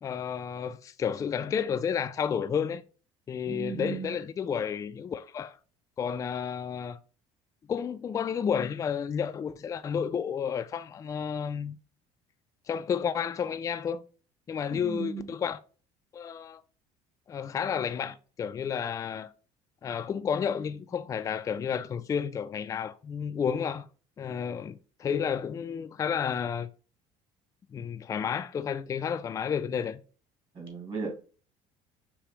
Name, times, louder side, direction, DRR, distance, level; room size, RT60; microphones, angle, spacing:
voice 1, 0.0-2.8 3.3-5.6 6.0-7.0 7.7-11.8 12.7-14.0 14.5-15.6 16.1-16.6 17.3-19.3 19.8-23.9 24.2-26.7 27.7-30.0, left 7 dB, 25° left, 0.3 m, -31 dB
voice 2, 3.5-4.2 14.7-15.3 30.5-31.1, right 5 dB, 40° right, 2.0 m, -36 dB
4.8 x 3.0 x 3.0 m
cardioid pair, 115°, 13 cm